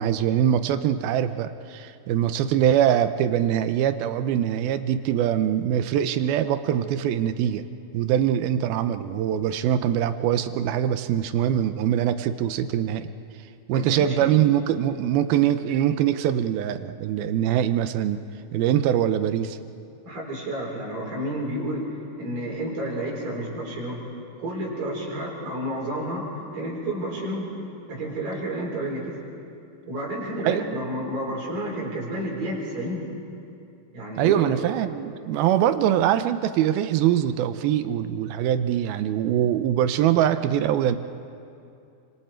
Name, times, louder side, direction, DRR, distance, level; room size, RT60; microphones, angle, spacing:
voice 1, 0.0-7.6 7.9-13.1 13.7-18.2 18.5-19.6 30.4-30.6 34.2-41.0, right 10 dB, 85° right, 11 dB, 2.6 m, -23 dB
voice 2, 13.7-14.3 20.0-21.9 22.2-24.0 24.4-27.5 27.9-29.2 29.9-33.0 33.9-34.5, right 1 dB, 65° right, -3 dB, 6.4 m, -30 dB
30.0 x 26.0 x 4.5 m, 2.5 s
omnidirectional pair, 4.3 m